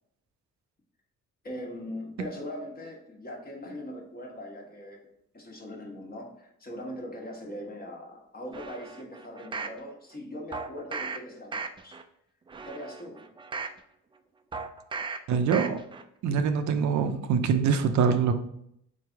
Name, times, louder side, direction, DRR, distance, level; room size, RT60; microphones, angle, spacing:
voice 1, 1.4-5.1 5.3-12.0 12.6-13.2, left 1 dB, 30° left, 0 dB, 1.1 m, -40 dB
sound 1, 8.5-9.8 10.5-11.2 11.5-12.0 12.5-13.8 14.5-15.2 15.5-16.0 16.4-16.5, right 4 dB, 15° right, 0.3 m, -37 dB
voice 2, 15.3-15.8 16.2-18.3, right 6 dB, 70° right, 8 dB, 0.5 m, -24 dB
3.9 x 3.2 x 3.4 m, 0.72 s
cardioid pair, 90°, 30 cm